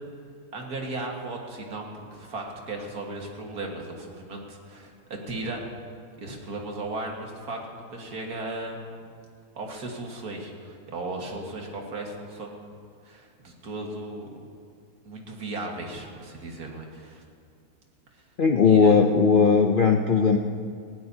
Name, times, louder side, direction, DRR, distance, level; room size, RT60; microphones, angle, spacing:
voice 1, 0.5-4.9 5.3-5.6 6.2-8.9 9.6-12.8 13.0-14.3 15.0-17.2 18.7-19.0, right 2 dB, 75° right, 0 dB, 2.2 m, -36 dB
voice 2, 18.4-20.4, left 5 dB, 60° left, 3 dB, 0.5 m, -18 dB
18.0 x 17.5 x 2.8 m, 2.2 s
omnidirectional pair, 1.6 m